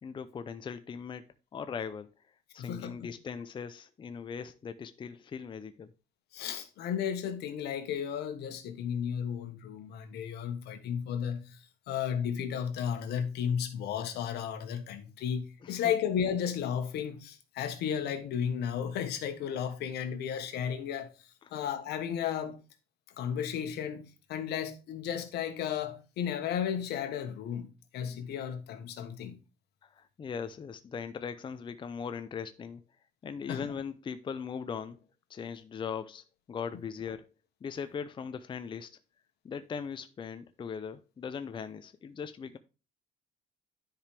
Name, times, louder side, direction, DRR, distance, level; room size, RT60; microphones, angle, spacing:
voice 1, 0.0-1.3 1.5-2.1 2.5-5.9 15.6-15.9 21.4-21.5 28.0-28.2 29.8-32.8 33.2-35.0 35.3-37.3 37.6-39.0 39.4-42.6, left 6 dB, 30° left, 0.5 m, -39 dB
voice 2, 2.6-3.0 6.3-11.6 11.9-21.1 21.5-22.6 23.2-27.7 27.9-29.4 33.5-33.7, left 8 dB, 75° left, 1.4 m, -34 dB
10.0 x 5.0 x 3.4 m
cardioid pair, 110°, 17 cm